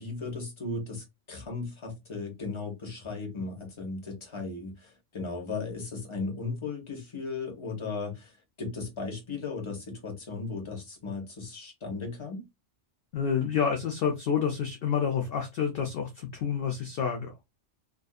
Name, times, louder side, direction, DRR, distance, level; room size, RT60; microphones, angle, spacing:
voice 1, 0.0-8.3 8.6-12.4, left 3 dB, 25° left, 0.9 m, -36 dB
voice 2, 13.1-17.3, left 7 dB, 60° left, 0.7 m, -28 dB
2.5 x 2.4 x 2.3 m
omnidirectional pair, 1.2 m